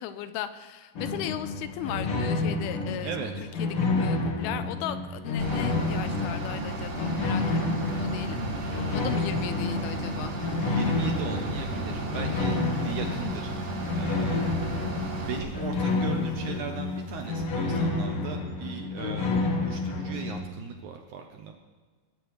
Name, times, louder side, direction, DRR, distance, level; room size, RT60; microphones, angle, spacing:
voice 1, 0.0-3.7 4.0-10.3, left 11 dB, 85° left, 11 dB, 2.6 m, -37 dB
sound 1, 0.9-20.4, left 3 dB, 55° left, 1.7 m, -30 dB
voice 2, 3.0-3.5 8.3-9.0 10.6-13.5 13.9-14.5 15.2-21.5, right 6 dB, 75° right, 4 dB, 1.8 m, -38 dB
Bus / Idling, 5.4-15.4, right 2 dB, 55° right, 3.2 m, -35 dB
sound 2, 7.8-17.3, right 1 dB, 25° left, 3.5 m, -44 dB
22.0 x 12.5 x 3.2 m, 1.4 s
omnidirectional pair, 4.5 m